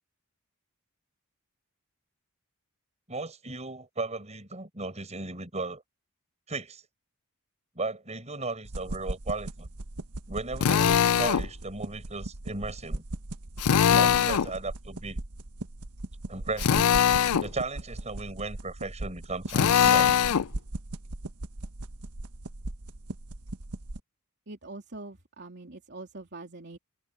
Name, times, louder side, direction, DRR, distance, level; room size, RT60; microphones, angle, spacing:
voice 1, 3.1-5.8 6.5-6.8 7.7-9.7 10.3-13.0 13.8-15.2 16.3-17.0 17.4-20.2, right 3 dB, 30° right, 7.7 m, -36 dB
sound 1, 8.6-24.0, right 2 dB, 90° right, 1.3 m, -39 dB
Drill, 10.6-11.5 13.6-14.5 16.6-17.5 19.5-20.5, left 8 dB, 80° left, 0.5 m, -22 dB
voice 2, 24.5-26.8, right 2 dB, 50° right, 3.2 m, -43 dB
head